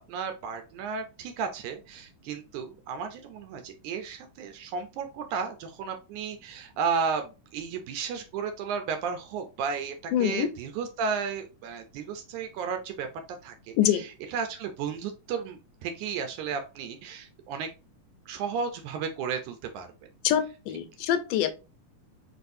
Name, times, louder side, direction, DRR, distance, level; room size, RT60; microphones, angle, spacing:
voice 1, 0.0-9.9 10.2-13.1 13.4-17.7 18.3-19.9, right 6 dB, 75° right, 1.9 m, -33 dB
voice 2, 10.1-10.5 13.8-14.0 20.2-21.5, left 10 dB, 80° left, 2.2 m, -25 dB
4.8 x 4.3 x 2.6 m
omnidirectional pair, 3.8 m